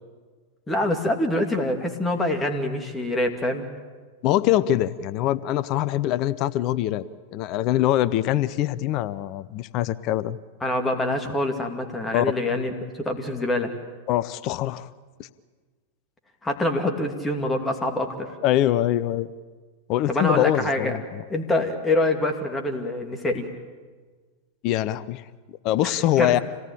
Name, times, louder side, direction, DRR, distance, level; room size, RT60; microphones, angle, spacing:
voice 1, 0.7-3.7 10.6-13.7 16.4-18.3 20.1-20.9 21.3-23.5 25.8-26.4, left 1 dB, 10° left, 4 dB, 2.6 m, -25 dB
voice 2, 4.2-7.0 7.3-10.4 12.1-12.3 14.1-14.9 15.2-15.3 18.4-19.3 19.9-21.2 24.6-25.2 25.6-26.4, left 13 dB, 40° left, 18 dB, 0.7 m, -23 dB
26.5 x 18.0 x 8.8 m, 1.5 s
figure-of-eight pair, 90°, 0 cm